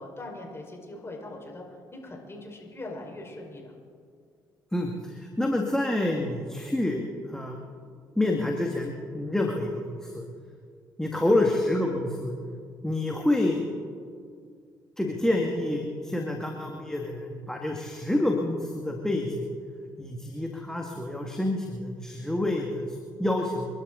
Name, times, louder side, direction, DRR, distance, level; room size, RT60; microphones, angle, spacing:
voice 1, 0.0-1.6 1.9-3.7, left 2 dB, 30° left, 0 dB, 5.2 m, -41 dB
voice 2, 4.7-7.0 7.3-7.6 8.2-10.2 11.0-12.3 12.8-13.6 15.0-19.4 20.0-23.7, left 1 dB, 5° left, 1 dB, 2.1 m, -28 dB
29.0 x 12.0 x 4.0 m, 2.2 s
hypercardioid pair, 50°, 9 cm